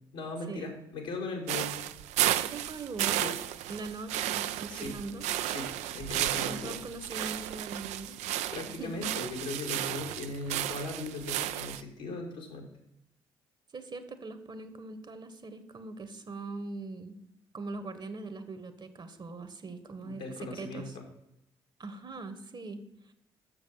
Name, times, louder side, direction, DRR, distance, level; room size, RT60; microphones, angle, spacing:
voice 1, 0.1-1.7 3.2-3.4 4.7-4.9 5.4-6.8 8.5-12.7 20.0-21.0, left 3 dB, 80° left, 0 dB, 1.9 m, -38 dB
sound 1, 1.5-11.8, right 13 dB, 70° right, 0.4 m, -33 dB
voice 2, 2.4-3.2 3.7-5.3 6.4-8.2 8.6-9.1 13.7-17.2 17.5-21.0 21.8-23.1, right 3 dB, 35° right, 11 dB, 1.1 m, -41 dB
7.2 x 6.8 x 5.5 m, 0.82 s
hypercardioid pair, 40°, 12 cm